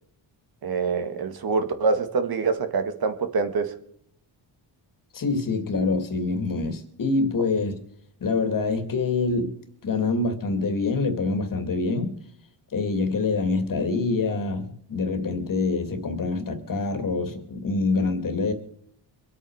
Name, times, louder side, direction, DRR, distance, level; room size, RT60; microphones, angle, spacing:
voice 1, 0.6-3.7, right 4 dB, 50° right, 1.9 m, -25 dB
voice 2, 5.1-7.8 8.2-9.5 9.8-12.1 12.7-18.5, left 3 dB, 45° left, 2.5 m, -25 dB
25.0 x 8.8 x 4.9 m
cardioid pair, 135°, 45 cm